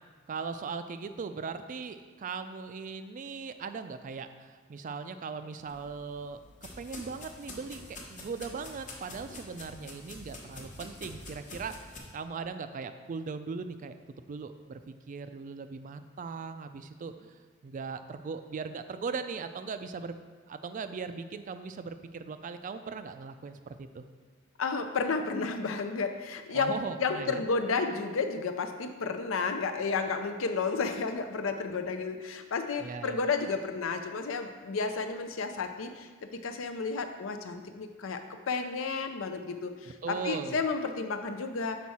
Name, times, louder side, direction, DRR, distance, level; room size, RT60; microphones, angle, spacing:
voice 1, 0.3-6.4 6.8-20.2 20.5-24.0 26.5-27.4 32.8-33.2 39.8-40.6, right 5 dB, 40° right, 10 dB, 0.3 m, -39 dB
sound 1, 5.6-12.0, left 2 dB, 40° left, 1.0 m, -46 dB
voice 2, 24.6-41.8, left 4 dB, 80° left, 7 dB, 0.5 m, -32 dB
6.1 x 4.6 x 4.2 m, 1.5 s
head